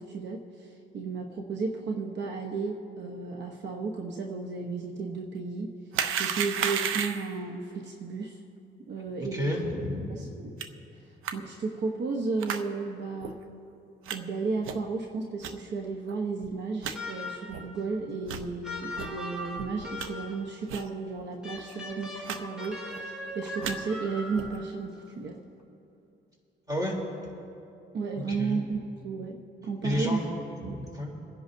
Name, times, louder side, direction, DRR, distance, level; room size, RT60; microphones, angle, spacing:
voice 1, 0.0-5.7 6.2-8.4 8.9-9.5 10.1-10.5 11.3-13.4 14.1-25.4 27.9-30.2 30.6-30.8, right 4 dB, 60° right, 1 dB, 1.0 m, -33 dB
sound 1, 5.9-7.4 10.6-10.7 11.2-11.3 12.4-12.6 13.2-13.3 14.1-14.2 14.6-14.9 15.4-15.5 16.1-16.2 16.4-16.5 16.8-17.0 17.5-17.6 18.2-18.5 19.0-19.1 19.5-20.1 20.7-20.9 21.2-21.3 21.5-21.7 22.2-22.4 22.6-23.0 23.4-23.7 24.3-24.6, right 8 dB, 90° right, 0.7 m, -32 dB
voice 2, 9.3-10.2 26.7-27.0 28.3-28.6 29.8-30.2 30.6-31.1, left 1 dB, 20° right, -2 dB, 3.6 m, -31 dB
sound 2, 16.9-17.6 18.6-20.5 21.4-24.6, left 1 dB, 5° right, 3.0 m, -39 dB
27.5 x 10.5 x 2.7 m, 2.7 s
cardioid pair, 90°, 20 cm